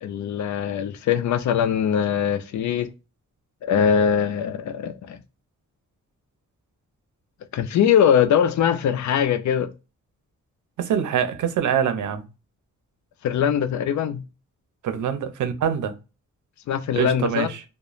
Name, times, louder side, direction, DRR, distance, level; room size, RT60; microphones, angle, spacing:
voice 1, 0.0-2.9 3.6-5.2 7.5-9.7 13.2-14.2 16.7-17.5, left 8 dB, 75° left, 0.4 m, -21 dB
voice 2, 10.8-12.2 14.8-15.9 16.9-17.6, right 8 dB, 85° right, 0.6 m, -24 dB
3.0 x 2.1 x 2.3 m
wide cardioid pair, 165°, 29 cm